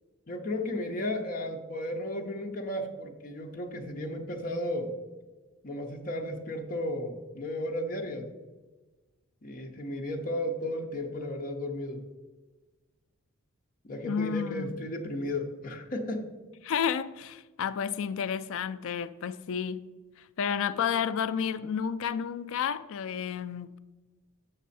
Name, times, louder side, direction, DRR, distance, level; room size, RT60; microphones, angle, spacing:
voice 1, 0.3-4.9 5.6-8.3 9.4-12.0 13.8-16.3, left 1 dB, 40° left, 0.7 m, -34 dB
voice 2, 14.0-14.8 16.6-19.8 20.2-23.8, left 7 dB, 65° left, 0.4 m, -31 dB
7.3 x 5.4 x 4.2 m
head